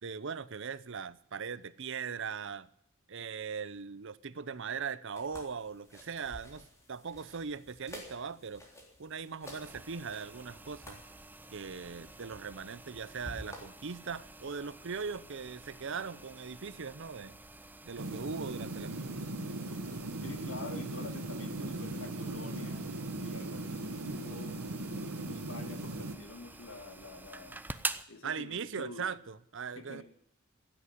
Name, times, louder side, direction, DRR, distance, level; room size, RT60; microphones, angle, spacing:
voice 1, 0.0-2.7 3.1-8.6 9.0-11.0 11.5-17.4 17.8-19.2 28.2-30.0, right 6 dB, 60° right, 17 dB, 0.7 m, -40 dB
sound 1, 5.2-13.6, equal, 15° left, 3.5 m, -51 dB
sound 2, 9.4-28.0, right 2 dB, 10° right, 0.6 m, -47 dB
sound 3, 18.0-26.2, right 2 dB, 90° right, 1.4 m, -38 dB
voice 2, 20.2-22.8 23.2-27.6 28.1-29.1 29.8-30.0, left 2 dB, 65° left, 7 dB, 2.3 m, -47 dB
16.5 x 8.5 x 9.4 m, 0.71 s
head